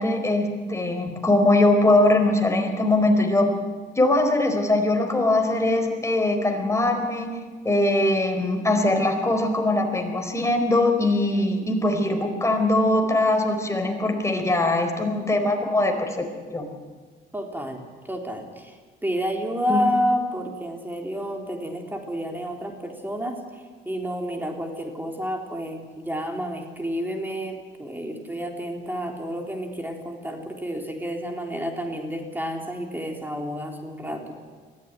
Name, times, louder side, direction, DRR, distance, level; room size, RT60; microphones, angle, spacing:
voice 1, 0.0-3.5 4.0-7.4 7.6-16.3 16.5-16.7 19.7-19.8, left 2 dB, 15° left, 4 dB, 4.4 m, -21 dB
voice 2, 17.3-18.8 19.0-34.4, equal, 10° right, 2 dB, 3.6 m, -30 dB
21.5 x 15.0 x 9.4 m, 1.5 s
cardioid pair, 90°, 20 cm